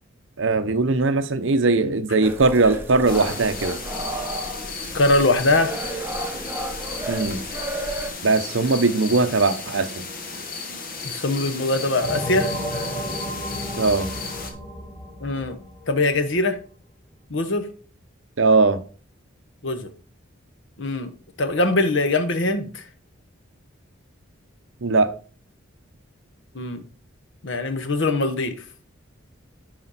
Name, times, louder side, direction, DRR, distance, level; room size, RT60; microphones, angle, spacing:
voice 1, 0.4-3.8 7.1-7.4 8.2-10.0 13.8-14.1 18.4-18.8 24.8-25.1, right 3 dB, 70° right, 0.7 m, -20 dB
sound 1, 2.2-8.1, right 1 dB, 10° right, 0.9 m, -32 dB
sound 2, 3.1-14.5, left 4 dB, 45° left, 1.3 m, -34 dB
voice 2, 4.9-5.7 11.0-12.5 15.2-15.6 15.9-16.6 17.3-17.7 19.6-19.9 20.8-22.9 26.5-26.8 27.4-28.5, left 2 dB, 60° left, 1.0 m, -22 dB
sound 3, 12.0-16.4, equal, 15° left, 2.5 m, -32 dB
10.0 x 4.3 x 4.1 m
head